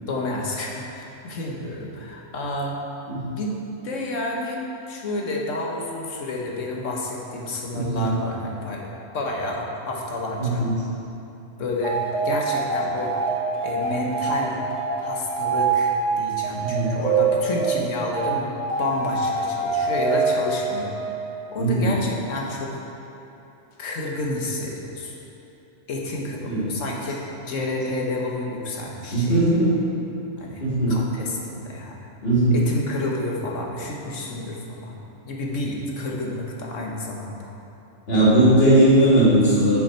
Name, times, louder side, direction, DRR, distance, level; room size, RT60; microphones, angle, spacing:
voice 1, 0.0-2.8 3.3-3.6 3.8-4.6 4.9-8.9 9.1-10.7 11.6-13.3 13.6-14.6 15.0-18.5 18.8-21.0 21.5-22.8 23.8-25.1 25.9-29.4 30.4-30.6 30.9-32.0 32.5-35.0 35.2-37.5, left 2 dB, 80° left, -1 dB, 1.5 m, -30 dB
voice 2, 7.7-8.1 10.4-10.7 16.6-16.9 21.6-21.9 26.5-26.7 29.1-29.7 30.6-31.0 32.2-32.6 38.1-39.8, right 1 dB, 50° left, -9 dB, 2.3 m, -18 dB
sound 1, 11.8-21.6, right 4 dB, 65° right, 1.4 m, -25 dB
10.0 x 6.3 x 4.4 m, 2.9 s
omnidirectional pair, 1.3 m